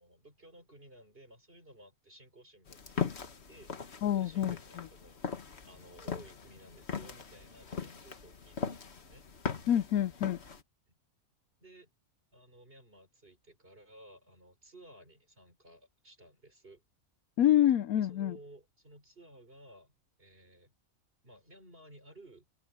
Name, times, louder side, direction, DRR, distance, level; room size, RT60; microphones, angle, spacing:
voice 1, 0.0-5.3 5.6-9.3 10.9-11.0 11.6-11.9 12.3-16.8 17.9-20.7 21.2-22.5, right 1 dB, 40° right, 5.6 m, -56 dB
sound 1, 2.7-10.6, left 6 dB, 50° left, 1.7 m, -40 dB
voice 2, 4.0-4.6 9.7-10.4 17.4-18.4, left 11 dB, 80° left, 1.1 m, -26 dB
open air
omnidirectional pair, 1.5 m